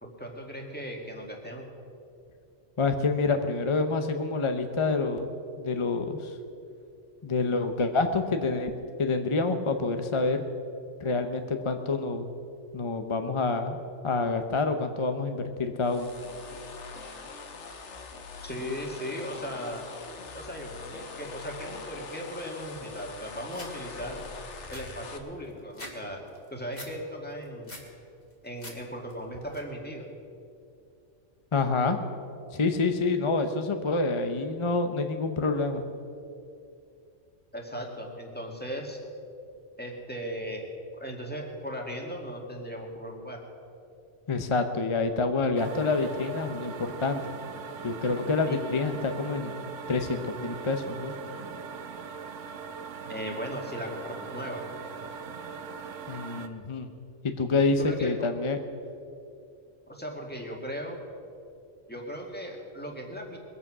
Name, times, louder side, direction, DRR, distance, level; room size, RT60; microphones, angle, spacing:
voice 1, 0.0-1.7 18.4-19.8 20.3-24.2 24.7-27.8 28.4-30.0 37.5-39.0 39.8-40.7 40.9-43.4 48.5-48.6 53.1-54.6 57.8-58.3 59.9-61.0 61.9-63.4, equal, 10° left, 0 dB, 2.0 m, -37 dB
voice 2, 2.8-5.3 5.6-6.3 7.2-8.7 9.0-10.4 11.0-12.3 12.7-13.8 14.0-16.1 31.5-32.0 32.5-35.8 44.3-47.2 47.8-49.5 49.9-51.1 56.1-56.9 57.2-58.6, left 3 dB, 30° left, 7 dB, 0.7 m, -27 dB
sound 1, 15.8-25.2, left 4 dB, 70° left, 1.4 m, -43 dB
sound 2, 23.5-23.7 24.2-24.3 24.5-26.0 26.3-26.9 27.3-27.9 28.3-28.8 29.1-29.6, left 1 dB, 50° left, 2.3 m, -44 dB
sound 3, 45.6-56.5, right 6 dB, 80° right, 1.2 m, -41 dB
21.5 x 8.3 x 6.1 m, 2.5 s
omnidirectional pair, 1.3 m